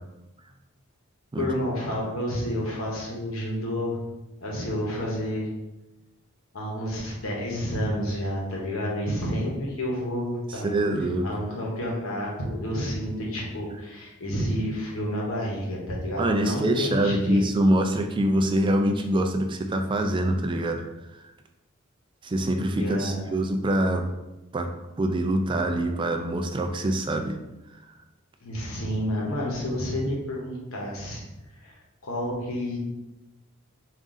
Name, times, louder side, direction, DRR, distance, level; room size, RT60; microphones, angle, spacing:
voice 1, 1.3-4.0 4.4-5.5 6.5-10.8 11.2-17.4 22.8-23.3 28.4-31.2 31.6-32.8, equal, 75° left, -3 dB, 0.9 m, -30 dB
voice 2, 10.6-11.3 16.2-20.9 22.2-24.1 24.5-24.7 25.0-27.3, right 1 dB, 25° right, 5 dB, 0.3 m, -24 dB
3.9 x 2.5 x 3.6 m, 0.98 s
head